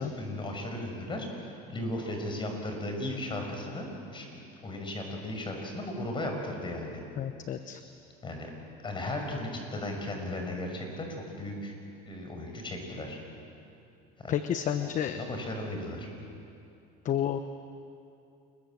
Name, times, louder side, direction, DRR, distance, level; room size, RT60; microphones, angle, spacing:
voice 1, 0.0-7.0 8.2-8.5 8.8-11.8 12.1-13.2 14.2-14.3 14.8-16.1, left 1 dB, 25° left, 3 dB, 6.4 m, -36 dB
voice 2, 7.2-7.8 14.3-15.2 17.0-17.4, left 10 dB, 45° left, 9 dB, 1.1 m, -30 dB
29.0 x 22.0 x 7.8 m, 2.7 s
supercardioid pair, 110°, 19 cm